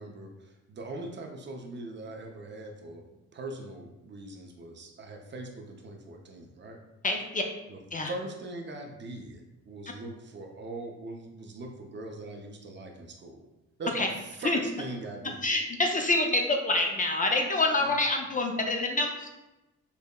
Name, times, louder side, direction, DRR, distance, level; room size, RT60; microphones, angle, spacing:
voice 1, 0.0-6.8 7.7-7.8 8.1-13.5 13.8-15.5 17.8-18.0, right 2 dB, 40° right, 3 dB, 0.5 m, -41 dB
voice 2, 7.0-7.4 7.9-8.1 13.9-14.1 14.4-14.6 15.4-19.4, left 2 dB, 30° left, 3 dB, 0.4 m, -26 dB
5.2 x 2.1 x 2.2 m, 0.97 s
cardioid pair, 90°, 30 cm